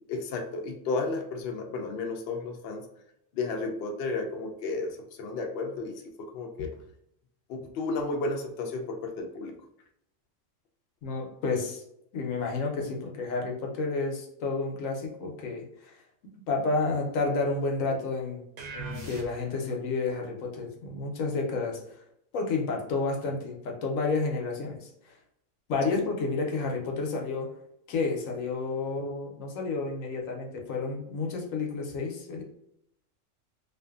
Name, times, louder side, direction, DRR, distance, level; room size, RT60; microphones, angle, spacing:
voice 1, 0.1-2.9 3.3-6.7 7.5-9.5 25.9-26.0, left 3 dB, 65° left, 2 dB, 0.7 m, -33 dB
voice 2, 11.0-11.8 12.1-16.0 16.5-18.4 18.7-21.8 22.3-25.1 25.7-27.5 27.9-32.4, left 3 dB, 85° left, 1 dB, 1.1 m, -30 dB
sound 1, 18.6-19.7, right 3 dB, 65° right, 0.9 m, -39 dB
2.5 x 2.5 x 2.3 m, 0.76 s
omnidirectional pair, 1.3 m